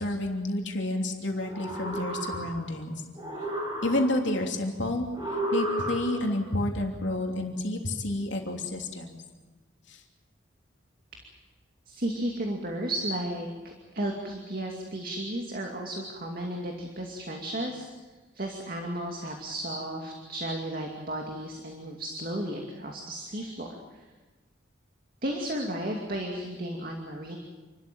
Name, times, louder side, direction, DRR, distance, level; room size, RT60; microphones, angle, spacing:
voice 1, 0.0-2.9 3.8-9.2 9.9-10.0, left 1 dB, 65° left, 1 dB, 3.1 m, -30 dB
sound 1, 1.4-2.8 3.1-4.4 5.1-6.4, right 1 dB, 25° right, 7.6 m, -32 dB
voice 2, 11.9-24.1 25.2-27.4, right 1 dB, 45° right, 1 dB, 2.4 m, -34 dB
28.5 x 13.0 x 9.2 m, 1.2 s
head